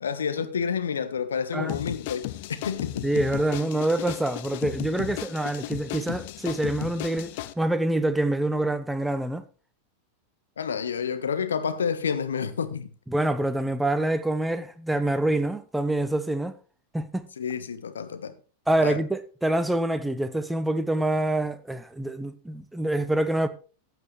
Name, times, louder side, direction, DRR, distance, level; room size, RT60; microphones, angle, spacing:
voice 1, 0.0-2.2 2.6-3.0 10.6-12.9 17.4-18.3 18.8-19.0, left 6 dB, 70° left, 1.2 m, -29 dB
sound 1, 1.7-7.5, left 15 dB, 50° left, 0.6 m, -35 dB
voice 2, 3.0-9.4 13.1-16.6 16.9-17.3 18.7-23.5, right 1 dB, 5° right, 1.0 m, -26 dB
14.5 x 7.9 x 3.3 m
figure-of-eight pair, 90°, 0 cm